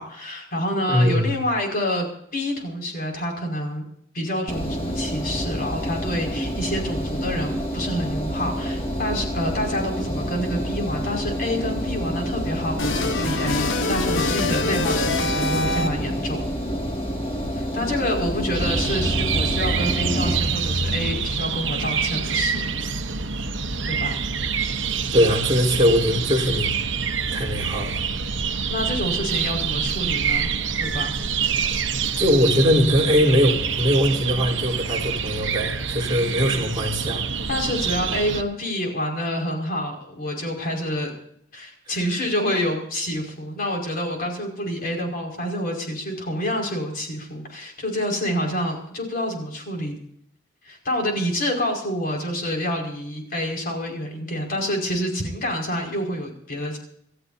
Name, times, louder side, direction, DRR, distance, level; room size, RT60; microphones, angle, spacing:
voice 1, 0.0-3.8 4.1-16.5 17.5-22.7 23.8-24.2 28.7-30.5 30.8-31.1 37.5-41.1 41.5-50.0 50.6-56.8, equal, 50° left, 1 dB, 5.4 m, -27 dB
voice 2, 0.9-1.3 25.1-26.7 27.3-28.0 32.2-37.2 41.9-42.0, equal, 25° right, -2 dB, 4.2 m, -21 dB
Engine, 4.5-20.4, equal, 30° left, 2.3 m, -28 dB
sound 1, 12.8-16.2, left 3 dB, 80° left, 1.1 m, -25 dB
sound 2, 18.5-38.4, right 5 dB, 70° right, 1.1 m, -26 dB
28.5 x 13.5 x 2.8 m, 0.68 s
head